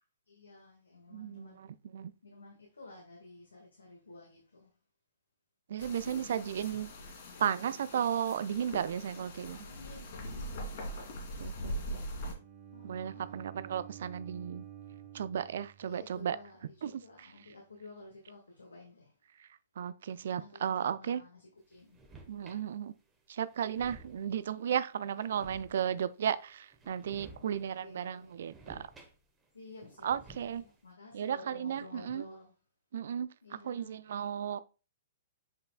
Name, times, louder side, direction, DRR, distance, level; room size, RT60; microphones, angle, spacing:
voice 1, 0.3-1.6 2.2-4.7 5.9-7.7 9.6-11.3 12.7-13.5 14.7-15.1 15.8-19.2 20.1-22.0 25.1-25.3 27.4-28.4 29.5-30.1 30.6-32.5 33.4-34.0, left 2 dB, 75° left, 1.8 m, -53 dB
voice 2, 1.1-2.1 5.7-6.9 7.4-9.7 11.4-12.0 12.8-14.6 15.1-16.4 16.8-16.9 19.8-21.2 22.3-22.9 23.3-28.9 30.0-30.6 31.1-32.2 32.9-33.3 33.6-34.6, right 9 dB, 55° right, 0.4 m, -34 dB
sound 1, 5.8-12.3, equal, 50° left, 2.5 m, -42 dB
Bowed string instrument, 12.2-16.3, right 10 dB, 35° right, 2.6 m, -50 dB
sound 2, 21.7-22.7 23.2-23.3 23.5-24.4 25.1-26.1 26.7-27.7 28.0-29.5 29.7-30.8, right 2 dB, 15° right, 1.3 m, -54 dB
8.0 x 5.4 x 2.3 m
figure-of-eight pair, 115°, 0 cm